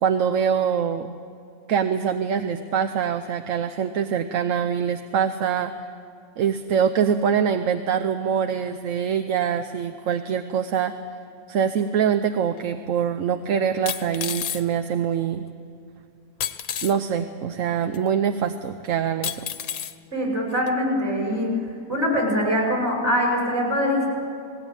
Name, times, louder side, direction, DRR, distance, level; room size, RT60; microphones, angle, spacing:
voice 1, 0.0-1.1 1.7-5.9 6.4-10.9 11.5-15.4 16.8-19.4, right 7 dB, 65° right, 8 dB, 1.1 m, -24 dB
sound 1, 12.6-12.7 13.9-14.6 16.4-16.9 17.9-18.0 19.2-19.9 20.7-20.8, left 9 dB, 70° left, 1.3 m, -30 dB
voice 2, 20.1-21.5 21.9-24.1, equal, 45° right, -2 dB, 6.5 m, -23 dB
20.0 x 18.0 x 9.0 m, 2.4 s
omnidirectional pair, 1.6 m